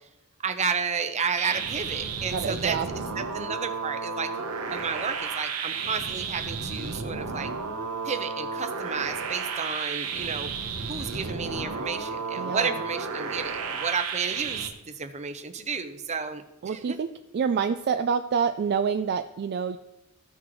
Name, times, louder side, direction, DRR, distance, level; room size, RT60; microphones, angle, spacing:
voice 1, 0.4-4.3 4.7-7.5 8.0-10.5 10.9-17.0, right 5 dB, 30° right, 8 dB, 0.7 m, -32 dB
sound 1, 1.4-14.7, right 5 dB, 85° right, 1.0 m, -33 dB
voice 2, 2.3-2.9 12.4-12.7 16.6-19.8, right 6 dB, 50° right, 8 dB, 0.3 m, -27 dB
14.0 x 6.1 x 3.1 m, 0.92 s
head